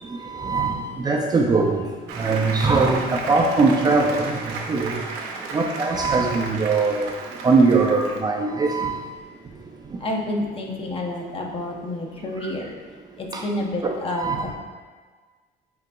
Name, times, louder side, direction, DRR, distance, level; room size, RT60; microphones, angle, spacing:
voice 1, 0.3-1.8 2.2-5.0 5.5-7.1 7.4-9.0 13.3-13.4 13.8-14.5, right 3 dB, 25° right, 0 dB, 0.4 m, -21 dB
Applause, 2.1-8.2, right 4 dB, 85° right, 0.5 m, -34 dB
voice 2, 10.0-12.7 13.2-14.5, left 1 dB, 35° left, 0 dB, 0.6 m, -29 dB
4.9 x 3.7 x 2.2 m, 1.5 s
cardioid pair, 110°, 17 cm